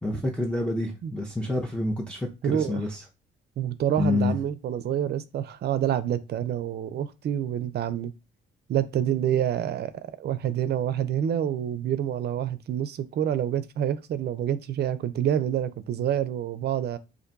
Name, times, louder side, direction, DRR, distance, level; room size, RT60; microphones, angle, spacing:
voice 1, 0.0-3.0 4.0-4.4, left 2 dB, 5° left, 0.5 m, -28 dB
voice 2, 2.4-2.8 3.6-8.1 8.7-9.9 10.2-17.0, right 10 dB, 55° right, 0.4 m, -27 dB
2.5 x 2.2 x 3.9 m
cardioid pair, 90°, 20 cm